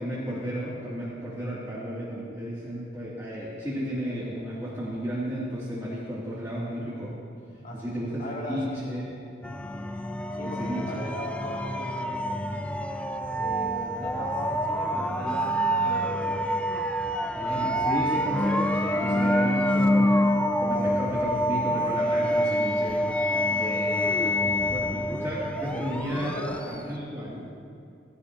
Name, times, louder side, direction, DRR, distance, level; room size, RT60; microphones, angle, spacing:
voice 1, 0.0-7.2 7.7-8.2 8.5-9.1 10.4-10.9 17.3-20.2 20.6-23.0 23.6-24.2 24.6-26.3 26.7-27.5, equal, 15° right, -10 dB, 2.5 m, -33 dB
voice 2, 7.6-7.9 8.2-9.1 10.3-12.6 13.3-16.5 24.2-24.9 25.7-26.8, equal, 45° left, -3 dB, 2.5 m, -38 dB
sound 1, 9.4-26.9, equal, 5° left, 0.4 m, -26 dB
19.5 x 16.5 x 2.8 m, 2.4 s
head